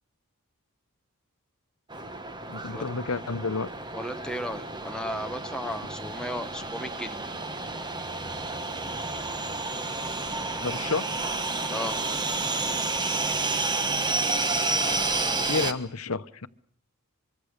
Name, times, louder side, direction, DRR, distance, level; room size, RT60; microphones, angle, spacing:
sound 1, 1.9-15.7, right 3 dB, 20° right, 1.3 m, -30 dB
voice 1, 2.5-3.7 10.6-11.2 15.4-16.5, left 4 dB, 70° left, 1.0 m, -30 dB
voice 2, 3.9-7.3 11.7-12.2, equal, 5° left, 0.9 m, -35 dB
24.5 x 24.5 x 6.7 m
head